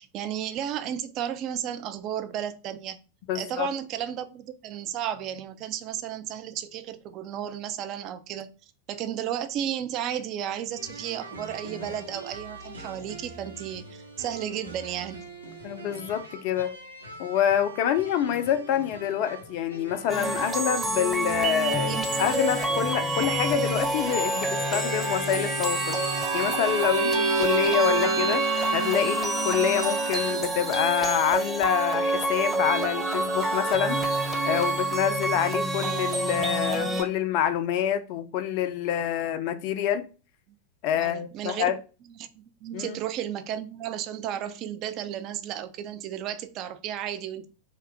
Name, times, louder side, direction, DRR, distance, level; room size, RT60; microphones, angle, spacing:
voice 1, 0.0-3.0 3.3-8.5 8.9-15.3 21.9-22.0 41.0-41.7 42.1-47.5, right 10 dB, 35° right, 0.4 m, -33 dB
voice 2, 3.3-3.7 15.6-16.7 17.2-28.4 28.7-34.0 34.4-40.1 40.8-41.8 42.7-43.0, left 9 dB, 45° left, 0.3 m, -27 dB
sound 1, 10.7-26.0, right 2 dB, 80° right, 0.8 m, -43 dB
sound 2, 20.1-37.0, right 2 dB, 10° right, 0.7 m, -28 dB
Bowed string instrument, 24.0-30.6, right 3 dB, 55° right, 1.0 m, -30 dB
3.0 x 2.2 x 3.3 m
figure-of-eight pair, 90°, 0 cm